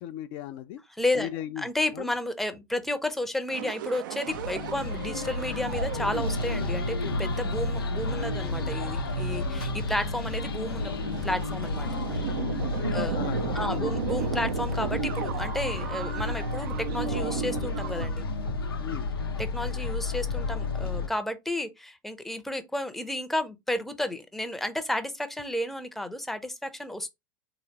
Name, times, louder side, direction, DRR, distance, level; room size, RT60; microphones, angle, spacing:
voice 1, 0.0-0.8 1.2-1.7 1.9-2.1 13.1-14.0 18.8-19.1, left 11 dB, 45° left, 0.4 m, -37 dB
voice 2, 1.0-1.3 1.6-12.3 12.9-13.2 13.5-18.3 19.4-27.1, left 1 dB, ahead, 0.6 m, -32 dB
sound 1, 3.5-18.1, right 12 dB, 60° right, 0.4 m, -37 dB
sound 2, 4.3-21.1, left 3 dB, 85° left, 0.7 m, -31 dB
3.8 x 2.9 x 3.1 m
figure-of-eight pair, 90°, 12 cm